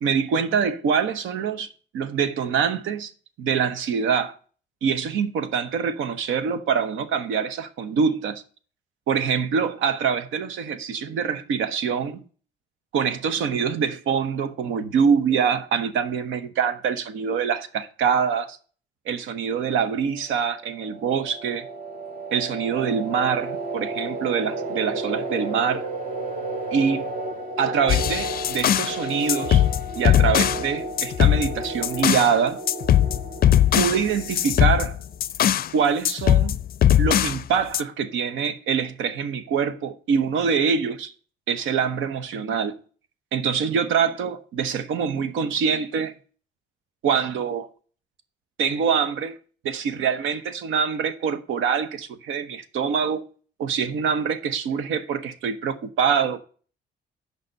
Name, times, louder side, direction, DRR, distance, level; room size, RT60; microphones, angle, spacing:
voice 1, 0.0-1.7 1.9-3.1 3.4-4.4 4.8-8.4 9.1-12.2 12.9-18.6 19.1-21.7 22.3-25.9 26.7-27.1 27.6-29.6 29.9-32.6 33.7-35.0 35.7-36.6 37.0-41.1 41.5-42.8 43.3-46.1 47.0-47.7 48.6-49.4 49.6-53.2 53.6-56.4, right 6 dB, 85° right, 0.9 m, -24 dB
sound 1, 20.3-34.9, right 2 dB, 50° right, 1.7 m, -33 dB
sound 2, 27.9-29.0 29.3-30.6 31.0-32.3 32.7-35.7 36.0-37.4 37.7-37.8, left 11 dB, 50° left, 0.4 m, -20 dB
6.6 x 5.1 x 6.4 m
cardioid pair, 90°, 20 cm